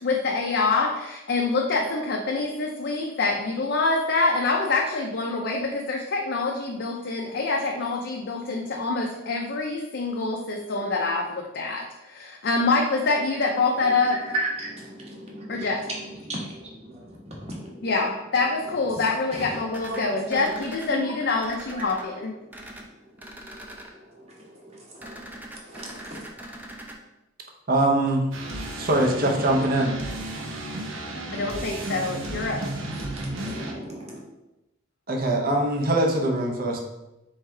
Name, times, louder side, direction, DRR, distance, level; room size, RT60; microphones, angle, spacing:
voice 1, 0.0-14.1 15.5-15.8 17.8-22.4 31.3-32.6, left 3 dB, 55° left, -1 dB, 0.5 m, -25 dB
voice 2, 13.7-18.2 18.5-21.4 21.8-26.7 32.5-34.2, right 1 dB, 30° right, -3 dB, 1.1 m, -38 dB
sound 1, 19.7-20.9 21.4-22.0 22.5-22.8 23.2-23.9 25.0-27.0, right 1 dB, 10° right, 0.4 m, -41 dB
voice 3, 27.7-28.2 28.8-30.0 35.1-36.8, right 1 dB, 50° right, 1 dB, 0.7 m, -22 dB
sound 2, 28.3-33.7, right 1 dB, 90° right, 0.8 m, -33 dB
3.5 x 3.2 x 4.5 m, 0.97 s
head